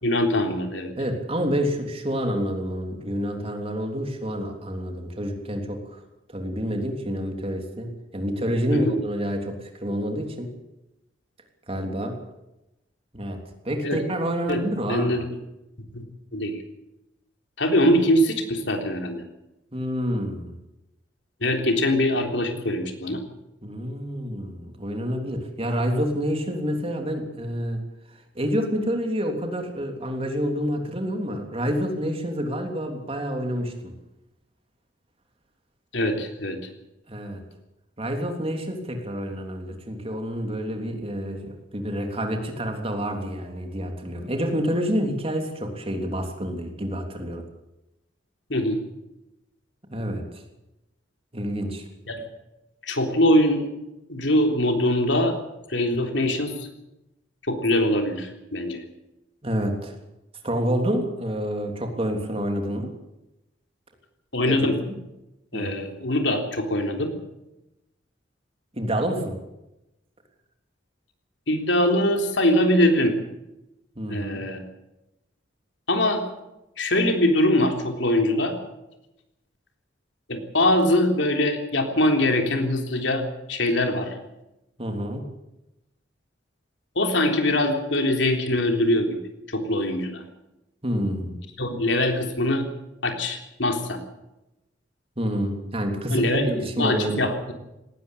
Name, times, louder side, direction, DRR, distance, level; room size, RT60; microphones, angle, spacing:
voice 1, 0.0-0.9 8.7-8.9 13.8-14.0 14.5-14.6 14.9-15.2 15.9-16.1 16.3-16.5 17.6-19.2 21.4-23.2 35.9-36.6 48.5-48.8 52.1-52.2 52.8-53.7 54.1-55.3 55.7-56.7 57.5-58.8 64.3-64.8 65.5-67.1 71.5-73.2 74.1-74.6 75.9-76.2 76.8-78.6 80.3-83.2 83.5-84.2 87.0-89.2 89.5-90.2 91.6-92.6 93.0-94.0 96.1-96.5 96.8-97.5, left 1 dB, 75° left, 4 dB, 3.6 m, -22 dB
voice 2, 0.9-6.0 6.3-10.5 11.7-12.2 13.1-15.2 19.7-20.6 23.6-27.8 28.1-33.9 37.1-37.4 38.0-47.5 49.9-50.3 51.3-51.9 59.4-60.0 60.4-62.9 64.4-65.0 65.5-65.8 68.7-69.4 74.0-74.4 84.8-85.3 90.8-91.4 95.2-97.3, equal, 30° right, 4 dB, 3.4 m, -28 dB
19.0 x 17.5 x 8.5 m, 0.93 s
head